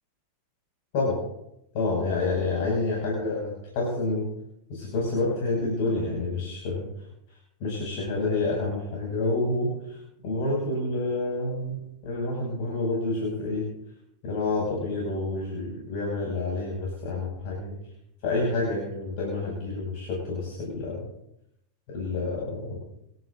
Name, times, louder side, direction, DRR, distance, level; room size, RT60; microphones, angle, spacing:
voice 1, 1.7-4.3 4.7-6.9 7.6-13.7 14.2-17.8 18.2-21.1 21.9-22.8, left 2 dB, 45° left, -4 dB, 6.1 m, -28 dB
26.5 x 11.5 x 2.6 m, 0.82 s
figure-of-eight pair, 90°, 0 cm